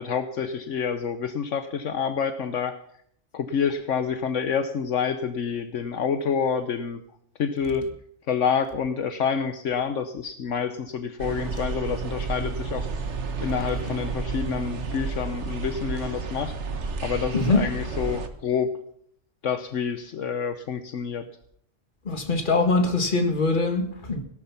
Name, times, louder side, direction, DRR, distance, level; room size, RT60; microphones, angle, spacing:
voice 1, 0.0-2.7 3.3-7.0 7.4-7.9 8.3-12.9 13.4-16.5 17.0-18.8 19.4-21.3, left 6 dB, 75° left, 1.2 m, -28 dB
sound 1, 11.2-18.3, right 4 dB, 65° right, 1.6 m, -31 dB
voice 2, 17.3-17.6 22.1-24.2, left 3 dB, 40° left, 1.9 m, -23 dB
17.5 x 12.0 x 5.8 m
omnidirectional pair, 1.3 m